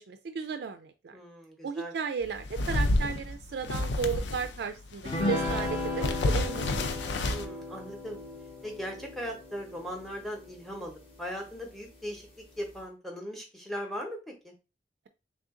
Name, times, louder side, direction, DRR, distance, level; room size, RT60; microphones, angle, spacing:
voice 1, 0.0-1.1 1.6-6.9, right 6 dB, 60° right, 8 dB, 0.3 m, -34 dB
voice 2, 1.1-1.9 7.3-8.2 8.6-14.2 14.4-14.5, equal, ahead, 1 dB, 0.8 m, -39 dB
sound 1, 2.2-4.6 4.9-7.5, left 2 dB, 70° left, 0.4 m, -30 dB
sound 2, 5.1-10.7, left 2 dB, 30° left, 0.8 m, -35 dB
3.4 x 2.5 x 3.7 m, 0.30 s
head